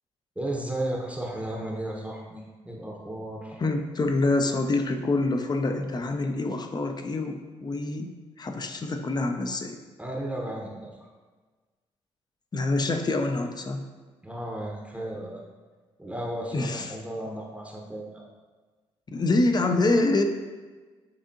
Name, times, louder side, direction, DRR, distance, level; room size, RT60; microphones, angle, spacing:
voice 1, 0.4-3.6 10.0-11.1 14.2-15.4 16.0-18.2, right 1 dB, 10° right, -2 dB, 0.8 m, -34 dB
voice 2, 3.6-8.1 8.4-9.8 12.5-13.8 16.5-17.0 19.1-20.2, left 2 dB, 30° left, 5 dB, 0.5 m, -26 dB
6.8 x 2.6 x 2.6 m, 1.4 s
hypercardioid pair, 45°, 14 cm